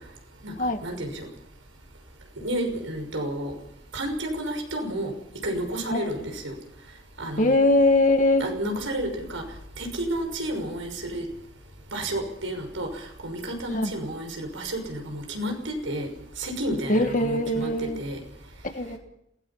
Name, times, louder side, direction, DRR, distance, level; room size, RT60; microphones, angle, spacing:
voice 1, 0.4-1.3 2.4-3.5 3.9-5.1 5.4-6.5 7.2-7.6 8.4-9.4 9.8-11.3 11.9-16.1 16.4-18.2, right 1 dB, 90° right, 4 dB, 6.1 m, -31 dB
voice 2, 7.4-8.5 13.7-13.9 16.9-18.0 18.7-19.0, left 2 dB, 40° left, 6 dB, 2.0 m, -21 dB
27.5 x 18.5 x 5.7 m, 0.78 s
head